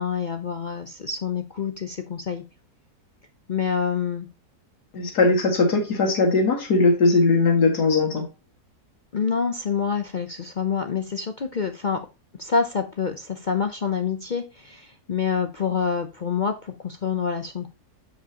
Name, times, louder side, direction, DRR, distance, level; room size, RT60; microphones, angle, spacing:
voice 1, 0.0-2.4 3.5-4.3 9.1-12.1 12.4-17.7, left 6 dB, 55° left, 7 dB, 0.5 m, -27 dB
voice 2, 4.9-8.2, left 3 dB, 80° left, 3 dB, 2.5 m, -19 dB
7.4 x 7.2 x 2.9 m, 0.28 s
omnidirectional pair, 1.7 m